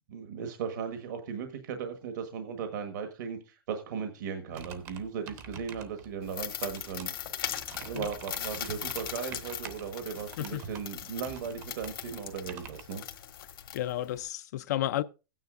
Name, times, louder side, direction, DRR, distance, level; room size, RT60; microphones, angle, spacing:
voice 1, 0.1-7.1 7.4-7.5 7.8-13.0, right 6 dB, 55° right, 1.4 m, -37 dB
sound 1, 4.5-12.8, right 6 dB, 25° right, 0.8 m, -47 dB
sound 2, 6.2-14.3, left 10 dB, 80° left, 1.5 m, -40 dB
voice 2, 13.7-15.0, left 13 dB, 50° left, 0.5 m, -32 dB
15.5 x 9.5 x 2.5 m
supercardioid pair, 170°, 12 cm